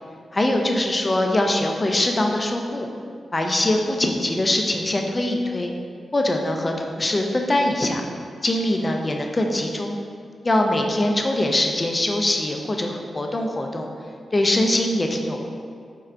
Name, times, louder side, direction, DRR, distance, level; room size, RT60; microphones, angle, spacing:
voice 1, 0.3-2.9 3.3-5.7 6.1-8.0 8.4-10.0 10.4-13.9 14.3-15.5, left 1 dB, 30° left, 2 dB, 0.5 m, -22 dB
4.5 x 3.2 x 2.5 m, 2.3 s
cardioid pair, 55°, 0 cm